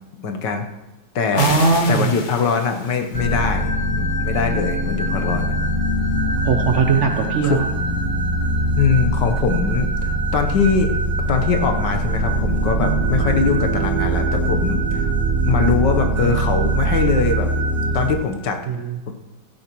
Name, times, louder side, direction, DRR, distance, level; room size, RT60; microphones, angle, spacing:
voice 1, 0.2-0.7 1.1-1.6 1.9-5.6 7.4-7.6 8.7-10.9 11.3-15.1 15.4-17.5 17.9-18.6 19.1-19.2, left 5 dB, 75° left, 5 dB, 1.6 m, -22 dB
voice 2, 1.3-2.1 6.3-7.6 18.7-19.1, right 5 dB, 55° right, 4 dB, 0.8 m, -19 dB
sound 1, 1.4-3.4, left 4 dB, 45° left, 0.6 m, -30 dB
sound 2, 3.1-18.1, right 1 dB, 30° right, 1.2 m, -22 dB
16.0 x 9.5 x 3.0 m, 1.1 s
omnidirectional pair, 2.0 m